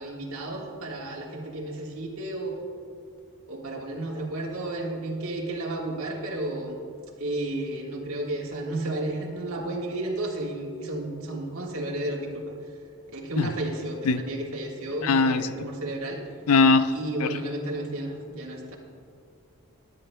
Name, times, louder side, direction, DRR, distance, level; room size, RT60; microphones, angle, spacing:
voice 1, 0.0-2.6 3.5-6.8 7.2-12.4 13.1-16.2 16.9-18.8, right 1 dB, 75° right, -2 dB, 1.5 m, -32 dB
voice 2, 15.0-15.7 16.5-16.9 17.2-17.4, left 4 dB, 85° left, 12 dB, 0.4 m, -21 dB
20.5 x 8.8 x 2.2 m, 2.3 s
head